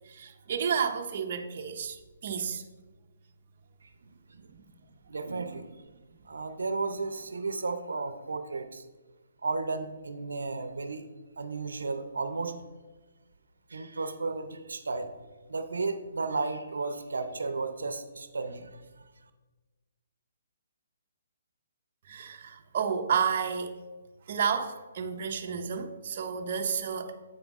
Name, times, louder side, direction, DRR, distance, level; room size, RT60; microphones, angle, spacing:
voice 1, 0.1-2.6 4.5-4.6 22.1-23.7 24.3-27.1, right 7 dB, 50° right, 5 dB, 0.6 m, -31 dB
voice 2, 3.8-4.5 5.1-5.7 6.2-8.8 9.4-11.0 11.4-12.6 13.7-15.1 15.5-18.8, right 3 dB, 90° right, 9 dB, 0.6 m, -34 dB
7.9 x 5.1 x 3.5 m, 1.2 s
hypercardioid pair, 150°, 0 cm